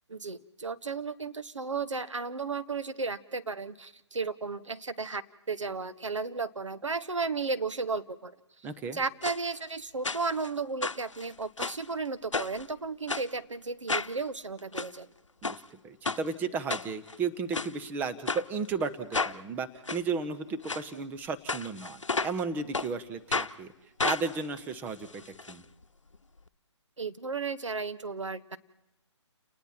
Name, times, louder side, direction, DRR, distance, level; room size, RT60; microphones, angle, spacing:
voice 1, 0.1-5.2 5.5-8.4 8.9-15.1 27.0-28.6, right 4 dB, 85° right, 12 dB, 1.3 m, -34 dB
voice 2, 8.6-9.0 15.4-23.7 24.0-25.2 25.5-25.6, right 5 dB, 10° right, 9 dB, 1.0 m, -34 dB
sound 1, 9.2-9.4 10.0-10.5 10.8-11.9 12.3-12.6 13.1-13.3 13.9-14.1 14.6-14.9 15.4-15.6 16.0-16.2 16.7-17.2 17.5-17.7 18.3-18.4 19.1-19.4 19.9-20.0 20.6-20.8 21.5-22.4 22.7-22.9 23.3-23.5 24.0-25.5 25.8-25.9 26.1-26.2, left 3 dB, 90° left, 0.9 m, -32 dB
30.0 x 19.5 x 4.4 m, 0.96 s
figure-of-eight pair, 145°, 15 cm